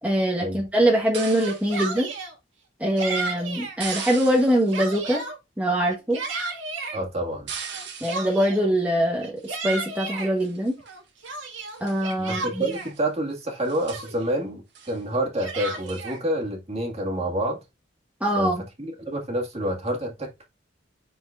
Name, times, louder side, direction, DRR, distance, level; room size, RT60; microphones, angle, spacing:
voice 1, 0.0-2.1 2.8-5.2 5.6-6.2 8.0-10.7 11.8-12.6 18.2-18.6, right 1 dB, 10° right, 1.3 m, -23 dB
sound 1, 1.1-1.7 3.8-4.8 7.5-8.3 9.4-9.8 10.4-10.9 11.2-11.4 11.7-12.1 12.6-13.0 13.3-13.4 13.6-14.2 14.8-15.0 15.9-16.1, right 6 dB, 65° right, 1.7 m, -38 dB
Yell, 1.3-2.3 3.0-3.8 4.3-5.4 5.9-7.0 7.7-8.7 9.2-10.3 10.8-12.9 13.5-13.6 13.9-14.4 15.1-16.2, right 3 dB, 85° right, 2.0 m, -33 dB
voice 2, 6.9-7.5 12.2-17.6 18.4-18.5 18.8-20.5, right 1 dB, 35° right, 2.0 m, -28 dB
10.5 x 4.5 x 2.5 m
head